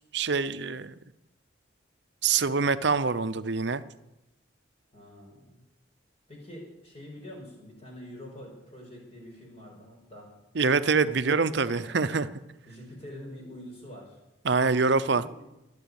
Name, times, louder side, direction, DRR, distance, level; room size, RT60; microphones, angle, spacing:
voice 1, 0.1-0.9 2.2-3.8 10.5-12.3 14.4-15.2, right 4 dB, 60° right, 13 dB, 0.6 m, -25 dB
voice 2, 4.9-5.6 6.3-10.3 10.9-12.2 12.6-14.2 14.9-15.4, left 1 dB, 30° left, 0 dB, 5.1 m, -46 dB
23.5 x 8.3 x 7.1 m, 0.94 s
head